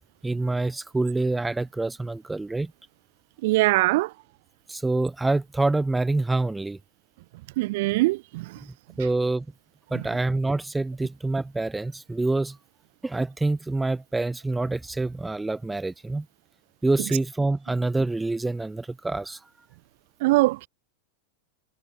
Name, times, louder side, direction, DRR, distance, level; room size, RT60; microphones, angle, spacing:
voice 1, 0.2-2.7 4.7-6.8 8.6-9.4 9.9-12.6 13.0-16.2 16.8-19.4, right 2 dB, 10° right, 3.2 m, -26 dB
voice 2, 3.4-4.1 7.6-8.4 20.2-20.7, right 20 dB, 50° right, 3.1 m, -22 dB
figure-of-eight pair, 90°, 0 cm